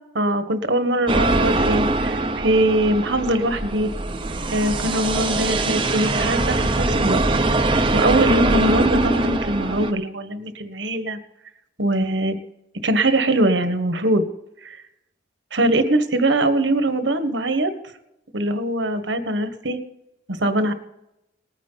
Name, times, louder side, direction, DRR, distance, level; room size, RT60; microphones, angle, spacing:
voice 1, 0.1-3.9 4.5-7.2 7.9-11.2 11.8-12.4 12.8-14.2 14.6-14.8 15.5-17.7 18.3-19.8 20.3-20.7, right 1 dB, 70° right, 9 dB, 1.5 m, -22 dB
sound 1, 1.1-9.9, right 2 dB, 25° right, 0.8 m, -22 dB
20.0 x 9.5 x 4.1 m, 0.85 s
head